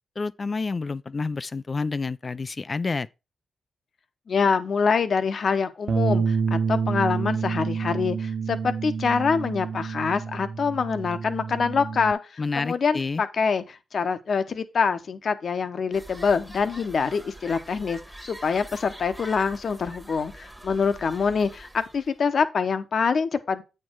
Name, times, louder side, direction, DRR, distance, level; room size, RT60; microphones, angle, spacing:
voice 1, 0.2-3.1 12.4-13.2, left 4 dB, 40° left, 0.4 m, -29 dB
voice 2, 4.3-23.6, left 5 dB, 60° left, 0.9 m, -25 dB
Bass guitar, 5.9-12.1, right 5 dB, 60° right, 0.4 m, -28 dB
sound 1, 15.9-22.2, right 1 dB, 5° right, 1.4 m, -44 dB
8.5 x 4.5 x 4.6 m
supercardioid pair, 50°, 0 cm